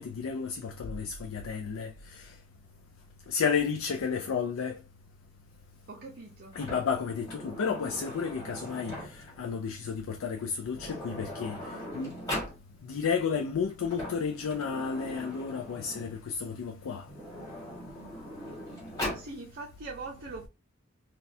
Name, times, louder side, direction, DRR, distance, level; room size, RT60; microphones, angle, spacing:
voice 1, 0.0-2.4 3.3-4.8 6.6-12.2 12.8-17.1, left 6 dB, 80° left, 0.4 m, -32 dB
voice 2, 5.9-6.6 19.1-20.5, right 3 dB, 50° right, 0.6 m, -42 dB
Sliding door, 6.5-9.4 10.4-10.5 10.7-12.6 13.7-16.2 17.0-19.3, left 1 dB, 15° left, 1.6 m, -40 dB
4.0 x 2.3 x 2.7 m
head